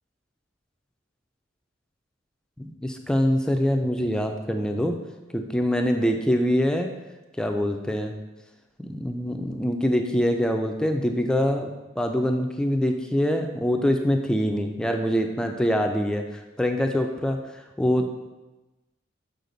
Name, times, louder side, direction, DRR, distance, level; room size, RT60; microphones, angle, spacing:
voice 1, 2.6-5.0 5.3-6.9 7.4-8.1 8.8-11.7 12.0-18.1, equal, 5° left, 4 dB, 0.3 m, -24 dB
6.6 x 4.8 x 3.9 m, 1.1 s
head